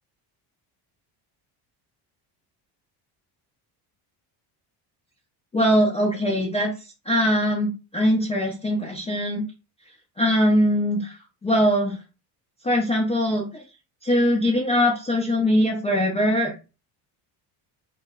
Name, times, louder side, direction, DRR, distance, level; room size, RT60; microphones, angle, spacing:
voice 1, 5.5-6.7 7.1-9.4 10.2-11.2 11.4-12.0 12.6-13.6 14.0-16.6, equal, 15° left, -1 dB, 0.3 m, -21 dB
2.1 x 2.0 x 3.5 m, 0.30 s
cardioid pair, 140°, 44 cm